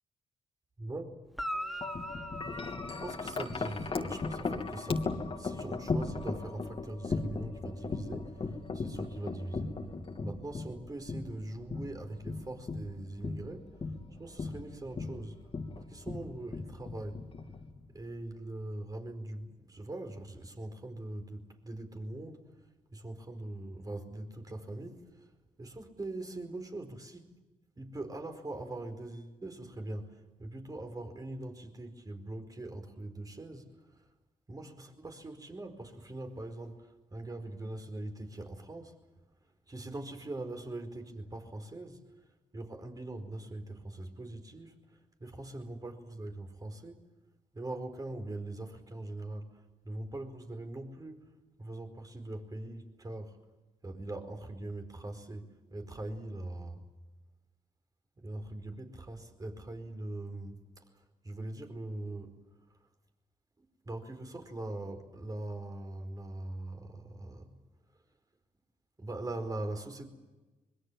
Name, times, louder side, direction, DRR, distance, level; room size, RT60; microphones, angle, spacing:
voice 1, 0.8-1.1 2.5-5.1 5.4-8.3 8.7-9.8 10.2-13.7 14.2-15.4 15.8-17.2 17.9-22.5 22.9-25.1 25.6-27.3 27.8-30.1 30.4-33.7 34.5-39.0 39.7-42.0 42.5-44.8 45.2-47.1 47.5-49.5 49.8-51.3 51.6-53.4 53.8-56.8 58.2-60.6 61.2-62.3 63.8-67.6 69.0-70.0, right 2 dB, 25° right, 4.7 m, -42 dB
Guitar, 1.3-3.9 7.7-7.8, equal, ahead, 1.3 m, -41 dB
Wind chime, 1.8-18.0, left 3 dB, 40° left, 3.0 m, -37 dB
25.5 x 22.5 x 7.6 m
cardioid pair, 80°, 14 cm